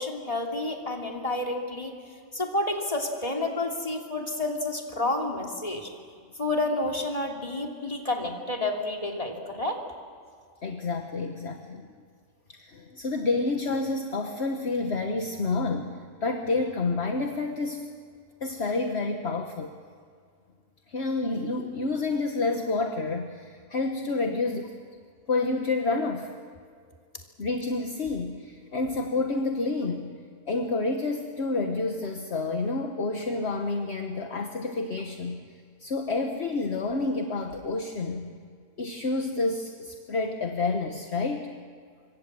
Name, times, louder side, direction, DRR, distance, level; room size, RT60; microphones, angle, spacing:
voice 1, 0.0-1.9 2.3-5.9 6.4-9.8, left 2 dB, 25° left, 1 dB, 3.1 m, -30 dB
voice 2, 10.6-11.9 12.5-15.9 16.2-17.9 18.4-19.7 20.9-24.7 25.3-26.3 27.4-30.1 30.5-35.4 35.8-38.3 38.8-41.5, left 3 dB, 55° left, 4 dB, 1.6 m, -29 dB
26.0 x 24.0 x 7.6 m, 2.1 s
omnidirectional pair, 1.4 m